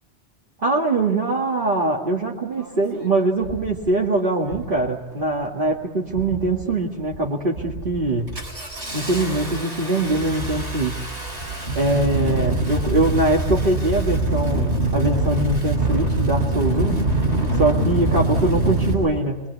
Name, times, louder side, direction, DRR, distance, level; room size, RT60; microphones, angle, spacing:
voice 1, 0.6-8.3 8.9-11.0 11.7-17.0 17.6-19.4, right 2 dB, 45° right, -3 dB, 2.3 m, -22 dB
Engine starting, 2.6-2.7 3.4-3.7 4.4-4.8 5.1-5.6 6.1-6.6 7.0-7.2 7.6-18.9, right 2 dB, 70° right, 7.5 m, -24 dB
29.0 x 22.0 x 8.3 m, 1.0 s
omnidirectional pair, 1.2 m